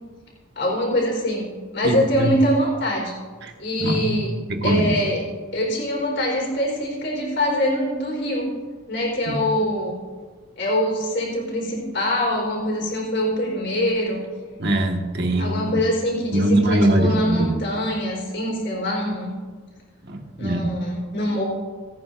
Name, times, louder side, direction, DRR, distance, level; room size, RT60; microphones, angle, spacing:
voice 1, 0.6-1.5 1.7-3.1 3.6-4.3 4.6-5.3 5.5-8.5 8.9-10.0 10.6-14.2 15.4-19.3 20.4-21.4, equal, 55° left, -2 dB, 3.9 m, -24 dB
voice 2, 1.8-2.3 3.8-4.2 4.5-4.9 9.3-9.4 14.6-15.8 16.3-17.6 20.1-20.7, right 1 dB, 55° right, 2 dB, 1.5 m, -22 dB
27.0 x 9.1 x 2.5 m, 1.4 s
head